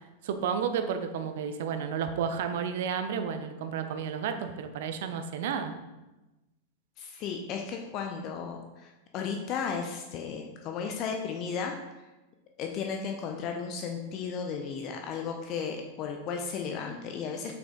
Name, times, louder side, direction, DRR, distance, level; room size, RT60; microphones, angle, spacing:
voice 1, 0.2-5.7, right 7 dB, 55° right, 8 dB, 0.8 m, -32 dB
voice 2, 7.0-11.7 12.6-17.5, left 6 dB, 40° left, 2 dB, 0.8 m, -34 dB
7.6 x 5.8 x 3.9 m, 1.1 s
figure-of-eight pair, 90°, 0 cm